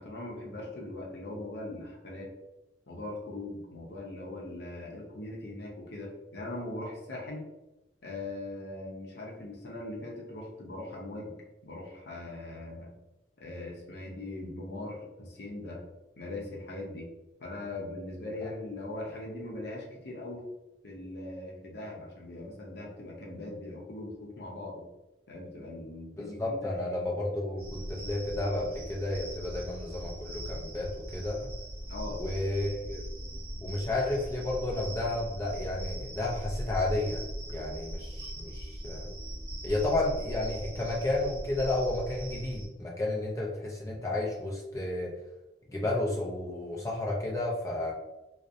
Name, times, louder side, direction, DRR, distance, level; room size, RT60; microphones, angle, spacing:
voice 1, 0.0-2.3 2.9-7.4 8.0-11.3 11.6-12.9 13.4-15.9 16.2-17.1 17.4-20.5 20.8-24.8 25.3-26.9 31.9-32.2, left 2 dB, 65° left, -2 dB, 0.6 m, -40 dB
voice 2, 26.2-31.5 32.1-33.1 33.6-37.2 37.5-39.1 39.6-45.1 45.7-47.9, left 2 dB, 20° left, -3 dB, 0.3 m, -32 dB
sound 1, 27.6-42.7, equal, 60° right, 0.7 m, -40 dB
2.4 x 2.0 x 2.5 m, 0.99 s
head